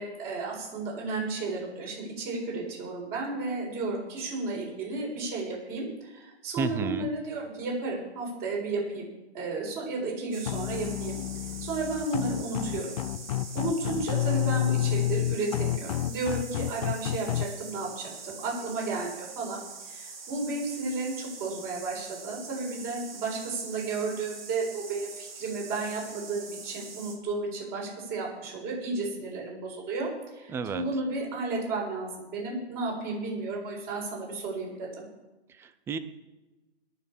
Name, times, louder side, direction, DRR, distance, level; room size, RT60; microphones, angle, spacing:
voice 1, 0.0-9.1 9.3-11.2 11.6-12.9 13.5-19.6 19.9-30.1 30.3-35.0, right 3 dB, 25° right, -2 dB, 7.7 m, -33 dB
voice 2, 6.6-7.1 30.5-30.8 35.6-36.0, right 5 dB, 5° right, 12 dB, 0.6 m, -31 dB
sound 1, 10.3-27.1, right 4 dB, 55° right, 5.4 m, -44 dB
sound 2, 10.5-17.4, left 13 dB, 35° left, 0.7 m, -30 dB
21.0 x 7.0 x 8.6 m, 1.1 s
hypercardioid pair, 135°, 34 cm